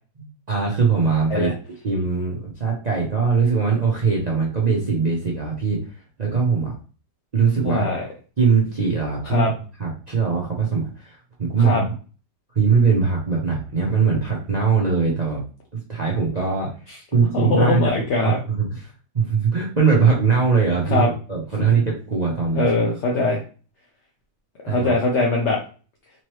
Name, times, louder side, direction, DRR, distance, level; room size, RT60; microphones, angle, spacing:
voice 1, 0.2-1.5 1.8-6.7 7.3-7.9 8.4-9.5 9.8-11.8 12.6-15.4 15.7-16.7 17.1-17.9 18.2-22.6 24.7-24.9, right 5 dB, 50° right, -3 dB, 0.5 m, -21 dB
voice 2, 7.6-8.0 9.2-9.5 11.6-11.8 17.3-18.4 20.9-21.1 21.6-21.7 22.5-23.4 24.6-25.6, left 3 dB, 55° left, -2 dB, 0.8 m, -21 dB
3.9 x 3.1 x 3.0 m, 0.37 s
omnidirectional pair, 1.9 m